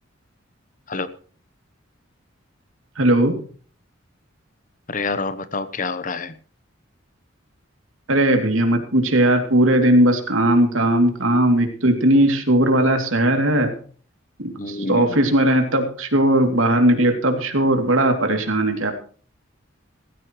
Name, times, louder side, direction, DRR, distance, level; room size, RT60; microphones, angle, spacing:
voice 1, 3.0-3.4 8.1-13.7 14.4-18.9, right 1 dB, 80° right, 5 dB, 2.9 m, -18 dB
voice 2, 4.9-6.3 14.6-15.2, left 3 dB, 40° left, 13 dB, 0.9 m, -27 dB
17.5 x 15.5 x 3.1 m, 0.43 s
head